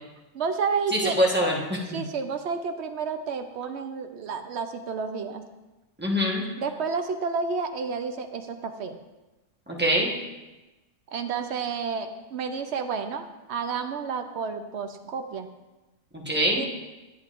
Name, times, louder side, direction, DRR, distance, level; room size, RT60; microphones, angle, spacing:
voice 1, 0.3-1.2 1.9-5.5 6.6-9.0 11.1-15.5 16.5-16.7, right 5 dB, 60° right, 7 dB, 0.8 m, -30 dB
voice 2, 1.2-2.0 6.0-6.4 9.7-10.1 16.1-16.6, equal, 10° right, -4 dB, 1.1 m, -24 dB
9.7 x 9.6 x 2.5 m, 1.1 s
omnidirectional pair, 1.6 m